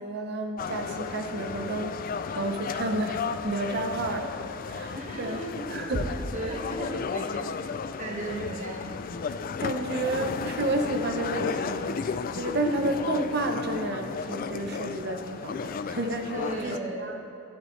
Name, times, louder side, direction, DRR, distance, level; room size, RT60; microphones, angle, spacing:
voice 1, 0.0-4.4 4.7-5.4 5.7-6.2 9.6-17.2, right 2 dB, 55° right, 5 dB, 0.8 m, -31 dB
sound 1, 0.6-16.8, left 5 dB, 45° left, 0.3 m, -34 dB
voice 2, 4.9-5.6 6.3-8.8 16.3-17.1, right 1 dB, 40° right, -1 dB, 1.4 m, -36 dB
12.0 x 10.5 x 3.2 m, 2.7 s
head